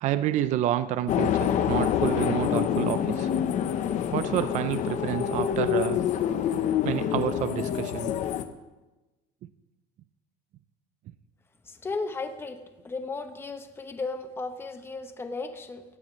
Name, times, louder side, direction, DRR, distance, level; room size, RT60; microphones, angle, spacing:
voice 1, 0.0-3.3 4.1-6.0 6.8-8.1, right 12 dB, 40° right, 12 dB, 0.5 m, -29 dB
sound 1, 1.1-8.4, left 9 dB, 40° left, 0.8 m, -26 dB
voice 2, 11.6-12.6 12.8-15.8, left 3 dB, 10° left, 7 dB, 0.8 m, -35 dB
17.0 x 16.0 x 3.2 m, 1.1 s
cardioid pair, 165°, 19 cm